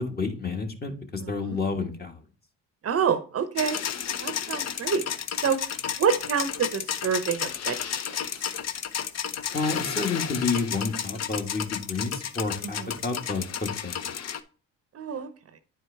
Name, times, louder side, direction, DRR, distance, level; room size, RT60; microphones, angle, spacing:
voice 1, 0.0-2.2 9.5-14.1, left 4 dB, 30° left, 4 dB, 1.4 m, -30 dB
voice 2, 1.2-1.6 2.8-3.8 4.2-5.0 5.3-5.6 6.0-7.9 12.8-12.9 14.9-15.3, right 7 dB, 45° right, 11 dB, 0.7 m, -27 dB
sound 1, 3.6-14.4, left 8 dB, 50° left, 0.7 m, -32 dB
9.5 x 4.5 x 3.3 m, 0.39 s
supercardioid pair, 75°, 34 cm